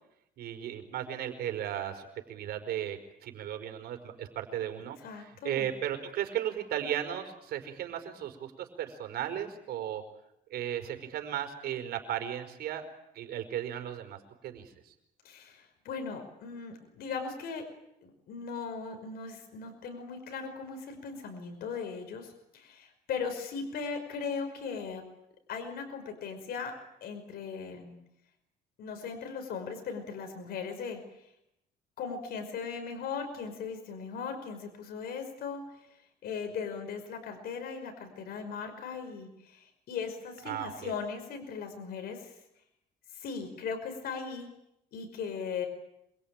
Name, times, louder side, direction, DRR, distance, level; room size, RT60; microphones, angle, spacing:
voice 1, 0.4-10.0 10.5-12.8 13.1-14.9 40.5-40.9, right 10 dB, 70° right, 7 dB, 5.0 m, -36 dB
voice 2, 5.0-5.7 15.2-17.6 18.0-25.0 25.5-26.7 27.0-28.0 28.8-31.0 32.0-35.6 36.2-42.3 43.1-44.5 44.9-45.7, left 5 dB, 65° left, 6 dB, 5.5 m, -38 dB
27.0 x 22.5 x 9.0 m, 0.83 s
cardioid pair, 110°, 17 cm